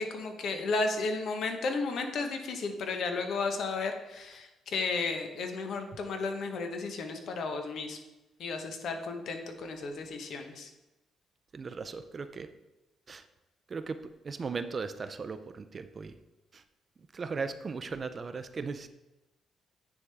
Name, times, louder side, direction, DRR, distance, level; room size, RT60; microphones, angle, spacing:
voice 1, 0.0-8.0 8.4-10.7, left 3 dB, 70° left, 5 dB, 0.9 m, -33 dB
voice 2, 11.5-12.5 13.1-13.2 13.7-14.0 14.2-16.1 17.1-18.9, right 4 dB, 40° right, 10 dB, 0.4 m, -37 dB
9.5 x 3.6 x 3.3 m, 1.0 s
cardioid pair, 90°, 0 cm